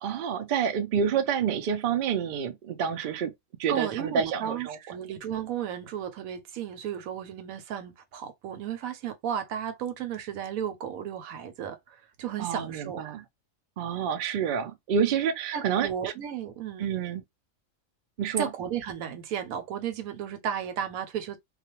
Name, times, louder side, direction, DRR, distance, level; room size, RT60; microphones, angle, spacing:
voice 1, 0.0-3.3 3.6-4.8 12.4-13.2 13.8-16.1 16.8-17.2 18.2-18.5, right 7 dB, 65° right, 0.5 m, -28 dB
voice 2, 3.7-13.0 15.5-16.8 18.4-21.4, right 9 dB, 90° right, 1.1 m, -34 dB
2.4 x 2.2 x 2.8 m
omnidirectional pair, 1.4 m